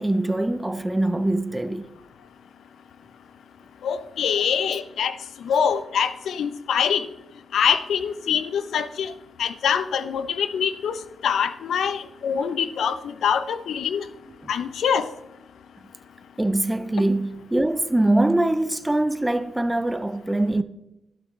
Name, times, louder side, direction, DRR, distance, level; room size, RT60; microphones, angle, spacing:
voice 1, 0.0-1.9 14.4-14.5 16.4-20.6, right 1 dB, 10° right, 0.4 m, -23 dB
voice 2, 3.8-5.2 5.4-7.1 7.5-9.1 9.4-10.9 11.2-14.1 14.5-15.1, left 7 dB, 80° left, 0.6 m, -24 dB
12.0 x 11.5 x 3.2 m
wide cardioid pair, 175°, 0 cm